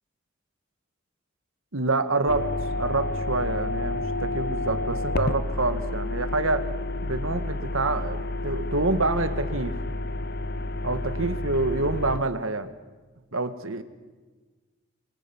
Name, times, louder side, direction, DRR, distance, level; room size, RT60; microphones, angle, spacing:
voice 1, 1.7-6.7 7.0-9.8 10.8-12.7 13.3-13.8, right 2 dB, 85° right, 10 dB, 1.9 m, -27 dB
sound 1, 2.3-12.2, left 2 dB, 50° left, 0.8 m, -30 dB
28.0 x 23.5 x 7.3 m, 1.3 s
head